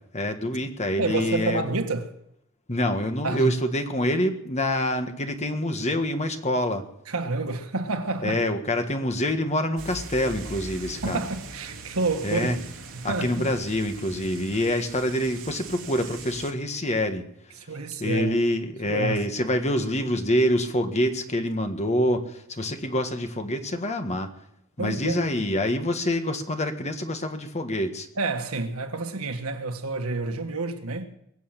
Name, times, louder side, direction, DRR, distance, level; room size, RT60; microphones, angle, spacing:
voice 1, 0.1-1.7 2.7-6.9 8.2-11.3 12.2-12.6 13.0-17.2 18.0-24.3 24.8-28.1, left 1 dB, 30° left, 1.6 m, -26 dB
voice 2, 1.0-2.1 3.2-3.5 7.1-8.4 11.0-12.5 13.0-13.5 17.7-18.3 18.8-19.2 24.8-25.2 28.2-31.1, right 3 dB, 85° right, 1.7 m, -28 dB
sound 1, 9.8-16.5, right 3 dB, 70° right, 2.7 m, -41 dB
22.0 x 7.8 x 7.4 m
head